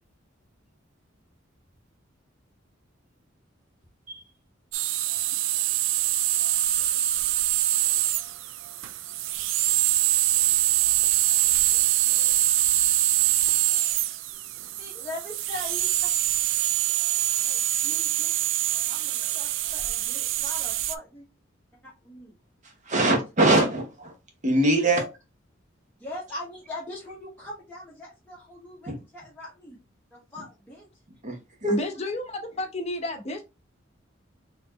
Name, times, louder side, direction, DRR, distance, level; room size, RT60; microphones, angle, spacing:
sound 1, 4.7-20.9, right 14 dB, 80° right, 0.3 m, -24 dB
voice 1, 14.8-16.1 17.4-18.3 18.9-21.3 21.8-22.3 26.0-29.8 30.1-30.9, left 1 dB, 10° left, 1.2 m, -41 dB
voice 2, 22.9-24.1 24.4-25.0 28.9-29.0 31.2-31.8, right 2 dB, 40° right, 1.1 m, -22 dB
voice 3, 31.7-33.4, left 1 dB, 35° left, 0.8 m, -31 dB
4.1 x 3.0 x 2.9 m
head